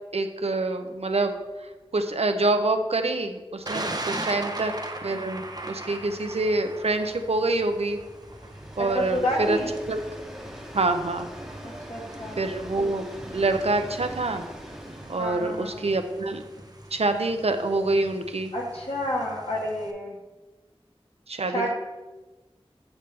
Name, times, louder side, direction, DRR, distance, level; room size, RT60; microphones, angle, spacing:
voice 1, 0.1-1.3 1.9-4.7 5.0-8.0 8.8-9.6 9.9-10.0 10.7-11.3 12.4-13.0 13.3-14.4 15.1-16.4 16.9-18.5 21.3-21.7, right 2 dB, 80° right, 6 dB, 0.6 m, -26 dB
Train, 1.3-1.4 1.7-1.8 2.1-19.5, equal, ahead, 1.1 m, -45 dB
Thunder, 3.7-19.9, right 2 dB, 40° right, 0.6 m, -40 dB
voice 2, 8.9-9.7 11.6-12.4 15.2-15.9 18.5-20.2 21.5-21.7, left 1 dB, 70° left, -3 dB, 1.4 m, -30 dB
8.0 x 5.2 x 3.3 m, 1.2 s
wide cardioid pair, 45°, 11 cm